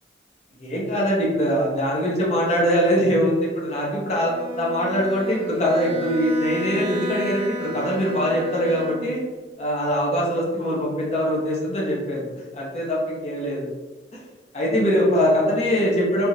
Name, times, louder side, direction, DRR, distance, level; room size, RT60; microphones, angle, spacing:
voice 1, 0.6-9.2 9.6-13.6 14.5-16.3, equal, 35° left, -4 dB, 0.7 m, -22 dB
Bowed string instrument, 4.1-9.4, equal, 30° right, 0.5 m, -33 dB
3.3 x 2.4 x 2.7 m, 1.3 s
head